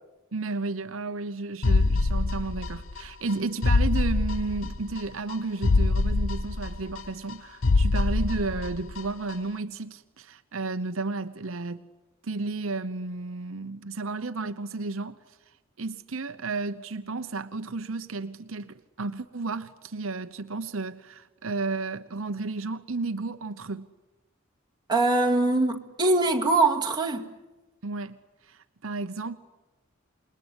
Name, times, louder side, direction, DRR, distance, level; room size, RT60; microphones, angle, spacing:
voice 1, 0.3-11.8 12.2-15.2 15.8-23.9 27.8-28.2 28.4-29.4, right 3 dB, 75° right, 1.0 m, -32 dB
sound 1, 1.6-3.0 3.3-3.4 3.6-5.0 5.3-5.4 5.6-7.3 7.6-9.0 9.3-9.4, left 3 dB, 75° left, 0.9 m, -24 dB
voice 2, 24.9-27.3, right 2 dB, 20° right, 2.2 m, -23 dB
27.5 x 21.5 x 9.9 m
head